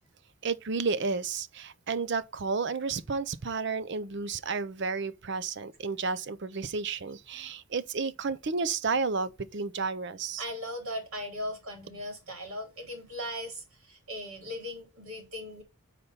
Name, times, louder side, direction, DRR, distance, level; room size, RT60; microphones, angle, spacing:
voice 1, 0.4-10.4, right 4 dB, 55° right, 0.6 m, -32 dB
voice 2, 10.4-15.6, left 1 dB, 85° right, 3.8 m, -38 dB
6.7 x 4.2 x 5.6 m
head